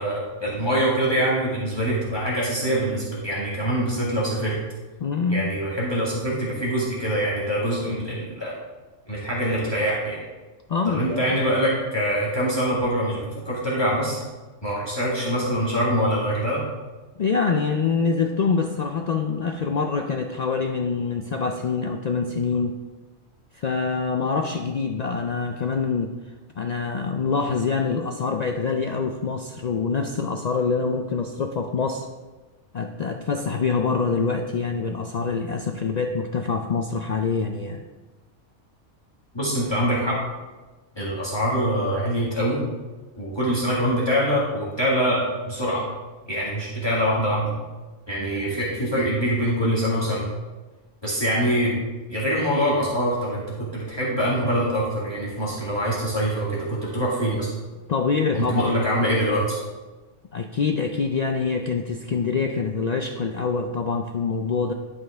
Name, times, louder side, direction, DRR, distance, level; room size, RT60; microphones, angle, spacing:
voice 1, 0.0-4.6 5.3-8.5 9.1-10.2 10.9-14.2 14.6-16.6 39.3-40.2 41.0-42.6 43.2-45.8 46.3-47.5 48.1-50.2 51.0-51.7 52.1-57.5 58.3-59.6, equal, 20° left, -7 dB, 1.8 m, -24 dB
voice 2, 5.0-5.5 10.7-11.4 17.2-22.8 23.5-26.1 26.6-32.1 32.7-37.8 57.9-58.7 59.0-59.1 60.3-64.7, left 5 dB, 80° left, 4 dB, 0.3 m, -25 dB
11.5 x 5.4 x 3.4 m, 1.2 s
omnidirectional pair, 1.3 m